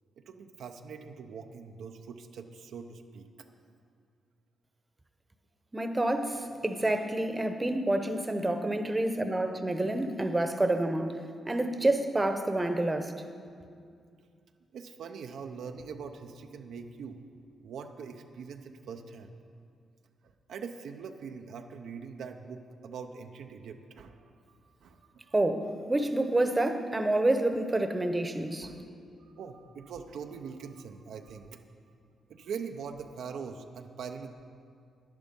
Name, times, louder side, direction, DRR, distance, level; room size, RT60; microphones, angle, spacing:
voice 1, 0.2-3.5 14.7-17.2 17.6-19.3 20.5-25.3 28.6-28.8 29.2-31.6 32.3-34.5, right 6 dB, 80° right, 5 dB, 0.6 m, -43 dB
voice 2, 5.7-13.1 25.3-28.7, right 1 dB, 20° right, 7 dB, 0.9 m, -28 dB
11.0 x 10.5 x 5.3 m, 2.3 s
cardioid pair, 65°, 0 cm